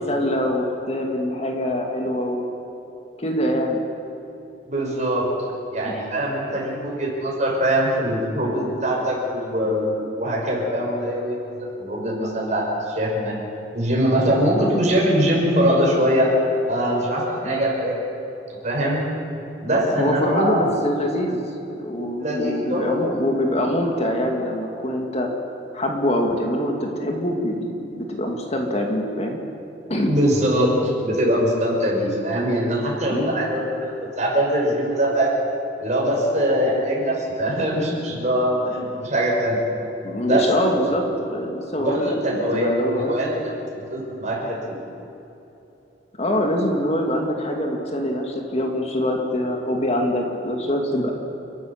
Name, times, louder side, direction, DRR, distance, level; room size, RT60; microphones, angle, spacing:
voice 1, 0.1-2.5 3.2-3.8 5.8-6.0 6.5-6.9 17.4-17.7 19.9-21.4 21.8-25.3 25.7-29.4 29.9-30.1 33.1-33.3 40.0-43.2 46.2-51.1, equal, 35° left, 2 dB, 2.2 m, -24 dB
voice 2, 4.7-5.3 5.7-13.3 13.7-16.3 16.7-18.0 18.6-19.0 19.6-20.7 22.2-23.0 30.1-30.7 31.0-33.7 34.2-35.4 35.8-39.6 40.2-40.4 40.8-40.9 41.8-42.7 43.1-44.8, equal, 45° right, -2 dB, 6.0 m, -22 dB
29.5 x 12.5 x 7.4 m, 3.0 s
head